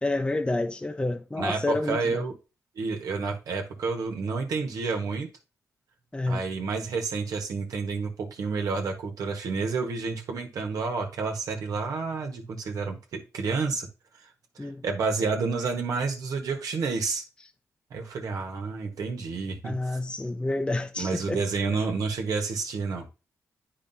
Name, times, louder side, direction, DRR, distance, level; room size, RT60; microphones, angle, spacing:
voice 1, 0.0-2.3 6.1-6.4 14.6-14.8 19.6-21.4, left 2 dB, 15° left, 0.7 m, -29 dB
voice 2, 1.4-2.3 2.7-5.3 6.3-13.9 14.6-17.2 17.9-19.7 21.0-23.1, right 4 dB, 75° right, 1.4 m, -30 dB
8.9 x 4.8 x 2.7 m
cardioid pair, 65°, 6 cm